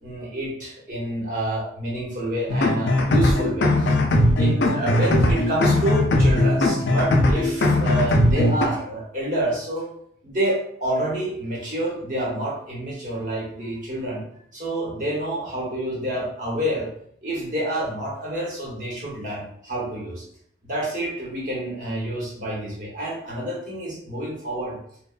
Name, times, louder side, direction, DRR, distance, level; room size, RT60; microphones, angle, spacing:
voice 1, 0.0-4.0 4.4-9.9 10.2-14.2 14.5-16.9 17.2-20.2 20.6-24.8, right 1 dB, 45° right, -5 dB, 1.0 m, -28 dB
sound 1, 2.5-8.7, left 1 dB, 70° left, 0.4 m, -19 dB
2.8 x 2.1 x 2.3 m, 0.65 s
head